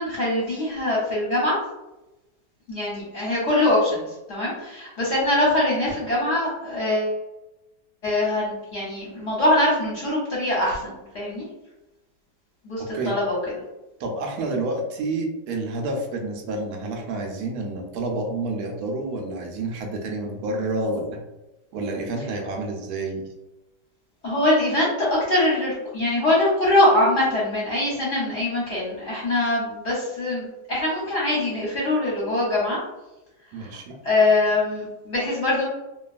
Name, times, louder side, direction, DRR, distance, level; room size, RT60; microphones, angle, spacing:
voice 1, 0.0-1.6 2.7-7.1 8.0-11.5 12.6-13.4 24.2-32.8 33.6-33.8 34.0-35.6, left 1 dB, 55° left, -6 dB, 0.9 m, -23 dB
voice 2, 12.8-13.1 14.0-21.2 21.7-23.3 33.5-34.0, right 2 dB, 70° right, 2 dB, 1.0 m, -29 dB
2.8 x 2.3 x 2.4 m, 1.0 s
omnidirectional pair, 1.9 m